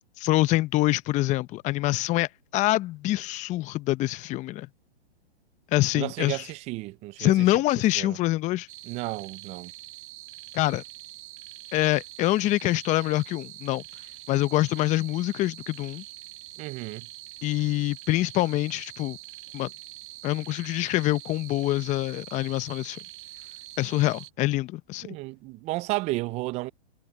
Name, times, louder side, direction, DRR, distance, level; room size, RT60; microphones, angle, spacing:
voice 1, 0.2-4.7 5.7-6.4 7.2-8.7 10.5-10.8 11.7-13.8 14.3-16.0 17.4-19.2 19.5-19.7 20.2-23.0 23.8-25.1, left 17 dB, 25° left, 0.8 m, -25 dB
voice 2, 5.9-7.3 8.0-8.2 8.9-9.7 16.6-17.1 25.0-26.7, right 21 dB, 20° right, 0.5 m, -32 dB
sound 1, 8.7-24.3, right 17 dB, 50° right, 1.9 m, -44 dB
hypercardioid pair, 125°, 32 cm